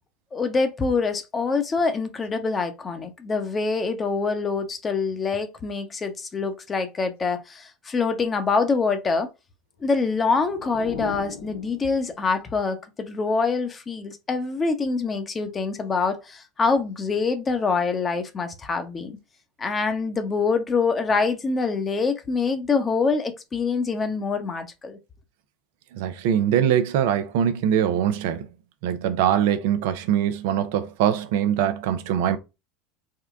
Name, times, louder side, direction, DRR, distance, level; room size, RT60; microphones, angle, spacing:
voice 1, 0.3-9.3 9.8-19.2 19.6-25.0, left 4 dB, 25° left, 0.8 m, -25 dB
sound 1, 9.8-12.5, left 5 dB, 90° left, 0.5 m, -39 dB
voice 2, 25.9-28.5 28.8-32.4, right 9 dB, 70° right, 0.5 m, -22 dB
3.7 x 2.2 x 3.5 m
hypercardioid pair, 90°, 0 cm